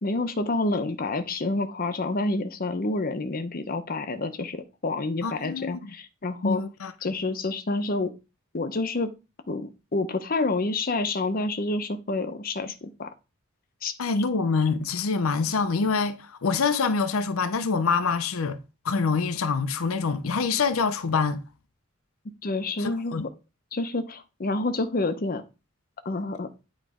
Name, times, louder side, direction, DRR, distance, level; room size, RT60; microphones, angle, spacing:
voice 1, 0.0-6.6 7.0-8.1 8.5-9.1 9.5-13.1 13.8-13.9 22.4-23.1 23.7-25.4 26.0-26.5, left 2 dB, 45° left, 0.7 m, -28 dB
voice 2, 5.2-5.8 6.4-6.9 14.0-18.6 18.8-21.4 22.8-23.2, left 4 dB, 85° left, 0.6 m, -25 dB
9.2 x 3.1 x 4.9 m
head